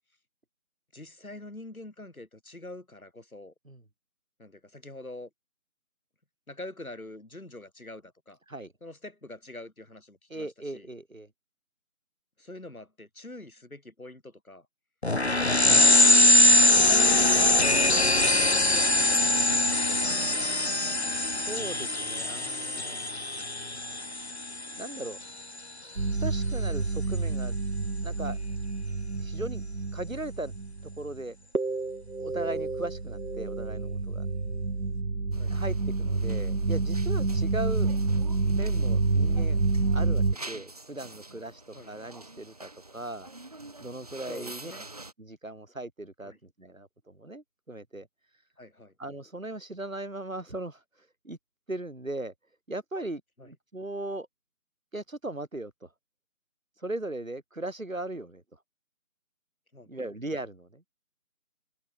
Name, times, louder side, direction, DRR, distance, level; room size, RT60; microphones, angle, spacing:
voice 1, 0.9-3.5 4.4-5.3 6.5-8.4 8.8-10.9 12.4-14.7 15.4-15.7 16.8-19.0 19.3-20.5 26.5-26.6 35.4-35.7 41.7-41.9 44.3-44.9 46.2-46.4 48.6-48.9 53.4-53.5 59.7-60.1, left 2 dB, 75° left, 5.5 m, -44 dB
voice 2, 10.3-11.3 21.4-23.0 24.8-25.2 26.2-27.6 28.0-28.4 29.2-29.6 29.9-30.5 31.0-31.4 32.2-34.3 35.5-37.9 38.5-39.6 39.9-43.3 43.8-44.7 45.2-48.1 49.0-50.8 51.2-51.4 51.7-52.3 52.7-54.3 54.9-55.9 56.8-58.4 59.9-60.8, right 2 dB, 65° right, 4.8 m, -38 dB
sound 1, 15.0-25.2, left 2 dB, 50° left, 0.8 m, -22 dB
sound 2, 26.0-31.2 31.5-40.4, right 3 dB, 90° right, 1.7 m, -28 dB
sound 3, 35.3-45.1, right 2 dB, 25° right, 7.5 m, -47 dB
figure-of-eight pair, 175°, 42 cm